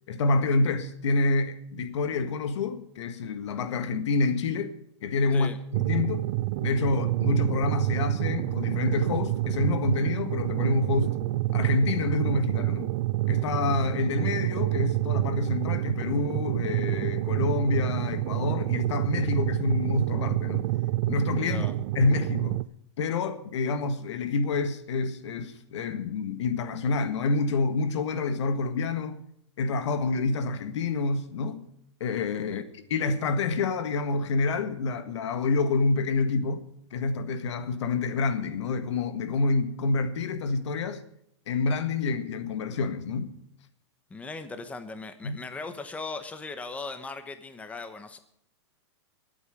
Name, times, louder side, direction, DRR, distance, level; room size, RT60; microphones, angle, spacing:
voice 1, 0.1-6.2 6.6-11.2 11.5-12.9 13.3-20.7 21.1-21.7 21.9-22.6 23.0-29.2 29.6-31.7 32.0-36.6 36.9-41.0 41.5-43.3 45.2-45.4, left 3 dB, 75° left, 1.7 m, -27 dB
sound 1, 5.7-22.6, right 17 dB, 50° right, 0.5 m, -28 dB
voice 2, 44.1-48.2, left 3 dB, 10° left, 1.0 m, -38 dB
23.5 x 8.5 x 5.0 m
hypercardioid pair, 145°, 15 cm